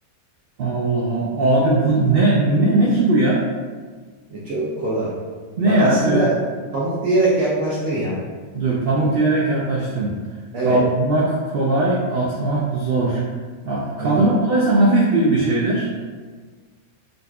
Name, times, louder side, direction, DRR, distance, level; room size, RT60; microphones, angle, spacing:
voice 1, 0.6-3.4 5.6-6.3 8.5-10.1 10.6-13.2 13.6-15.9, right 2 dB, 85° right, -5 dB, 0.5 m, -19 dB
voice 2, 4.3-5.2 5.6-6.3 6.7-8.2 10.5-10.8 14.0-14.3, right 2 dB, 70° right, -8 dB, 1.0 m, -22 dB
4.0 x 2.4 x 2.2 m, 1.5 s
omnidirectional pair, 1.5 m